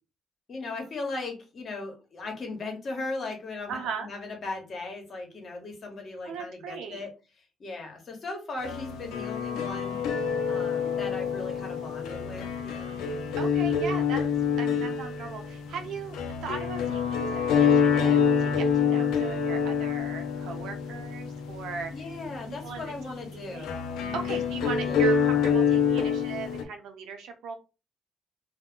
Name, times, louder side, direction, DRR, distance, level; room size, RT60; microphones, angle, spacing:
voice 1, 0.5-7.1 7.6-10.0 10.5-13.0 13.5-13.6 14.6-14.9 21.9-25.1, left 3 dB, 50° left, 3 dB, 1.1 m, -38 dB
voice 2, 3.7-4.1 6.2-7.1 13.4-14.2 14.6-21.9 22.5-23.7 24.1-27.5, right 5 dB, 85° right, 5 dB, 0.6 m, -38 dB
sound 1, 8.6-26.6, left 6 dB, 90° left, 0.4 m, -27 dB
2.3 x 2.1 x 3.6 m, 0.31 s
cardioid pair, 90°, 0 cm